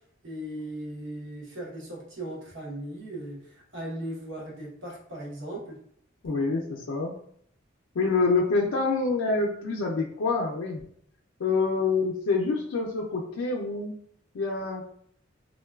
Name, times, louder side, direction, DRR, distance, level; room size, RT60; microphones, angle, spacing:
voice 1, 0.2-5.8, right 1 dB, 65° right, -3 dB, 0.9 m, -38 dB
voice 2, 6.2-7.1 7.9-10.8 11.4-13.9 14.3-14.8, left 3 dB, 85° left, -1 dB, 0.4 m, -26 dB
3.7 x 2.2 x 2.2 m, 0.64 s
head